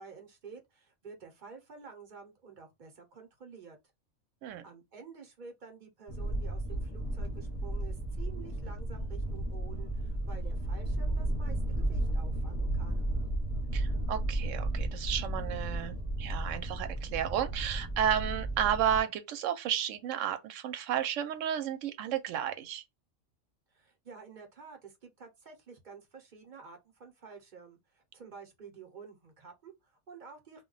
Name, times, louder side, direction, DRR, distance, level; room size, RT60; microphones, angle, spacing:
voice 1, 0.0-3.8 4.6-13.0 23.7-30.6, right 5 dB, 45° right, 0.8 m, -50 dB
sound 1, 6.1-19.0, right 1 dB, 30° left, 0.7 m, -33 dB
voice 2, 13.7-22.8, right 9 dB, 80° right, 0.9 m, -32 dB
2.2 x 2.2 x 3.8 m
omnidirectional pair, 1.3 m